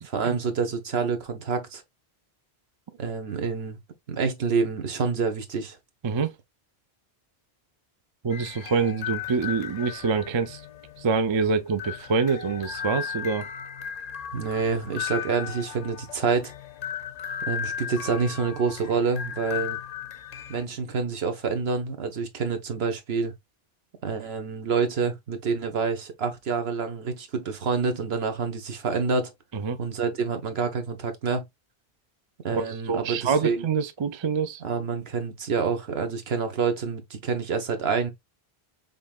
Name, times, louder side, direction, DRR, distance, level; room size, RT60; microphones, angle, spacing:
voice 1, 0.0-1.8 3.0-3.8 4.1-5.8 14.3-16.5 17.5-19.8 20.5-23.3 24.0-29.3 29.8-31.4 32.4-33.7 34.6-38.1, right 5 dB, 75° right, 1.3 m, -27 dB
voice 2, 8.2-10.6 11.0-13.5 29.5-29.8 32.5-34.6, right 5 dB, 40° right, 0.4 m, -26 dB
sound 1, 8.3-20.6, left 9 dB, 50° left, 0.5 m, -36 dB
5.3 x 3.7 x 2.4 m
omnidirectional pair, 1.1 m